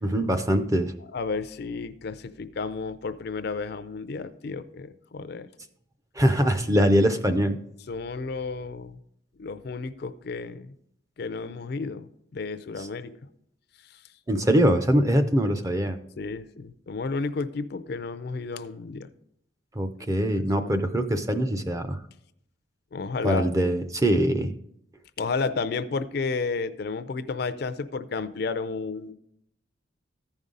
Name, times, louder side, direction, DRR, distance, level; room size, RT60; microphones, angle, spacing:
voice 1, 0.0-0.9 6.2-7.6 12.8-12.9 14.3-16.0 19.8-22.0 23.2-24.5, equal, 15° right, 8 dB, 0.5 m, -23 dB
voice 2, 1.1-5.5 7.9-9.0 9.4-10.7 11.2-13.1 16.2-19.1 22.9-23.5 25.2-29.1, left 4 dB, 50° left, 13 dB, 0.4 m, -32 dB
14.5 x 5.3 x 3.7 m, 0.75 s
head